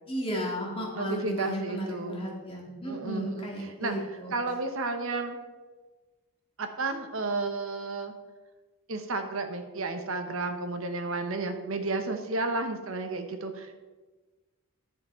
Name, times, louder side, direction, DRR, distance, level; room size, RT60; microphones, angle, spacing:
voice 1, 0.1-4.3, equal, 25° left, -2 dB, 2.0 m, -34 dB
voice 2, 0.9-2.3 2.9-5.4 6.6-8.1 8.9-13.8, right 3 dB, 70° right, 7 dB, 1.1 m, -32 dB
10.5 x 7.0 x 4.4 m, 1.3 s
head